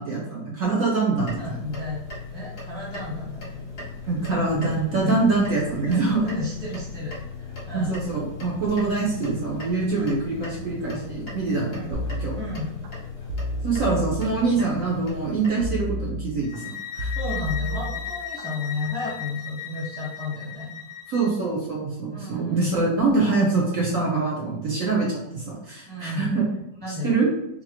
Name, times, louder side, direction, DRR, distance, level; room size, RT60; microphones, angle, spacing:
voice 1, 0.0-1.6 4.1-6.2 7.7-12.4 13.6-16.6 16.9-17.1 21.1-26.5 27.0-27.3, right 3 dB, 60° right, -4 dB, 0.9 m, -24 dB
sound 1, 1.2-15.5, left 4 dB, 50° left, 0.7 m, -38 dB
voice 2, 1.4-2.0 2.3-3.6 4.3-5.2 5.9-7.1 7.4-7.9 9.9-10.1 11.7-11.9 12.4-12.7 17.1-20.7 22.1-22.7 25.9-26.3 26.8-27.1, left 2 dB, 5° left, -6 dB, 0.6 m, -32 dB
sound 2, 11.9-12.9 13.3-14.7 15.6-16.6 17.0-18.4 18.8-19.2, equal, 85° right, 0.6 m, -31 dB
sound 3, 16.4-21.3, left 9 dB, 90° left, 1.3 m, -36 dB
4.0 x 2.9 x 2.8 m, 0.84 s
omnidirectional pair, 2.0 m